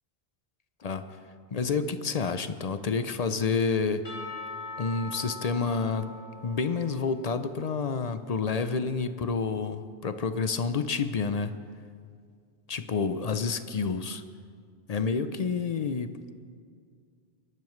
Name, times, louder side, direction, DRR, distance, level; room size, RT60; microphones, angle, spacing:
voice 1, 1.5-4.1 4.8-6.2 6.4-11.5 12.7-14.2 14.9-16.1, left 5 dB, 50° left, 10 dB, 0.5 m, -29 dB
Percussion / Church bell, 4.0-7.9, left 3 dB, 80° left, 1.8 m, -42 dB
23.0 x 12.0 x 3.2 m, 2.1 s
omnidirectional pair, 1.0 m